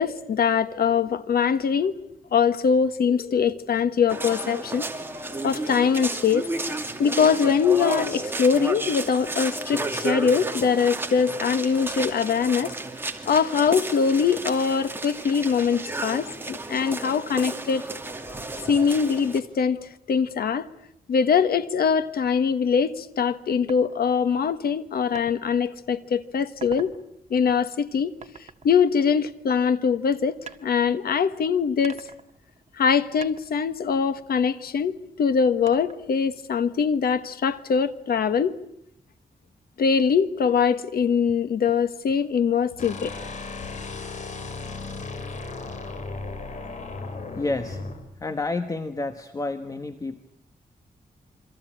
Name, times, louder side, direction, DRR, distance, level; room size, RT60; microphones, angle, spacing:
voice 1, 0.0-2.0 2.3-4.8 5.4-6.4 7.0-12.7 13.2-17.8 18.7-20.6 21.1-26.9 27.3-28.1 28.6-32.0 32.8-38.6 39.8-43.1, left 6 dB, 85° left, 1.4 m, -22 dB
sound 1, 4.1-19.4, right 2 dB, 15° right, 2.4 m, -32 dB
sound 2, 23.7-23.8 25.1-25.3 25.8-26.1 26.5-27.0 28.2-29.7 30.5-31.3 31.8-32.9 33.2-34.8 35.7-36.2, right 6 dB, 45° right, 1.7 m, -44 dB
sound 3, 42.8-48.0, left 3 dB, 50° left, 3.9 m, -35 dB
voice 2, 47.4-47.8 48.2-50.2, left 2 dB, 20° left, 1.3 m, -29 dB
27.5 x 24.5 x 8.8 m
wide cardioid pair, 170°, 15 cm